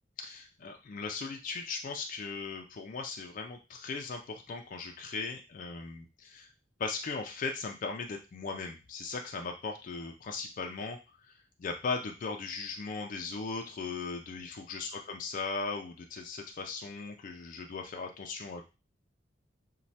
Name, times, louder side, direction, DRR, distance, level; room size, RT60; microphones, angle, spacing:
voice 1, 0.2-6.5 6.8-11.0 11.2-11.3 11.6-18.7, left 4 dB, 45° left, 3 dB, 0.4 m, -38 dB
3.1 x 2.2 x 2.7 m, 0.29 s
head